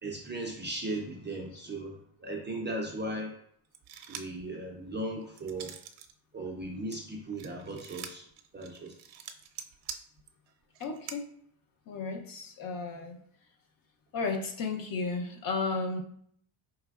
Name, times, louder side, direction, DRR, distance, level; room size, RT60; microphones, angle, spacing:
voice 1, 0.0-3.4 4.1-5.7 6.3-8.2 8.5-8.9, right 1 dB, 25° right, -1 dB, 0.3 m, -37 dB
sound 1, 3.7-4.4 4.9-6.1 6.5-11.2, right 8 dB, 80° right, 0.6 m, -45 dB
voice 2, 10.8-11.3 11.9-13.2 14.1-16.0, left 4 dB, 45° left, 5 dB, 0.6 m, -33 dB
4.5 x 3.3 x 2.3 m, 0.65 s
cardioid pair, 155°, 48 cm